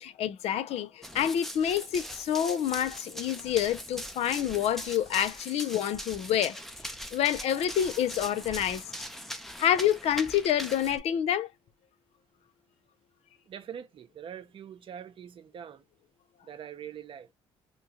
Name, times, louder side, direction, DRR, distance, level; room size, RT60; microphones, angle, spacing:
voice 1, 0.0-6.6 7.1-8.8 9.6-11.5, left 10 dB, 65° left, 0.5 m, -28 dB
Run, 1.0-11.0, equal, ahead, 0.6 m, -41 dB
voice 2, 13.5-15.8 16.4-17.3, right 9 dB, 50° right, 0.7 m, -43 dB
2.9 x 2.3 x 2.8 m
supercardioid pair, 80°, 11 cm